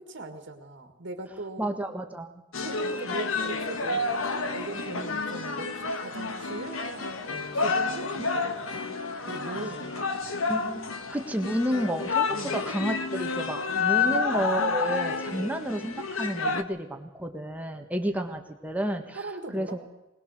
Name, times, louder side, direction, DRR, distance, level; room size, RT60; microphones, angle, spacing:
voice 1, 0.0-1.6 2.6-9.0 9.3-10.1 12.3-12.6 14.0-14.2 15.2-15.5 19.1-19.8, right 2 dB, 60° right, 5 dB, 1.9 m, -40 dB
voice 2, 1.6-2.3 10.5-19.8, equal, 5° right, 4 dB, 1.4 m, -31 dB
sound 1, 2.5-16.6, left 4 dB, 85° left, 1.4 m, -30 dB
21.5 x 19.5 x 6.5 m, 1.0 s
head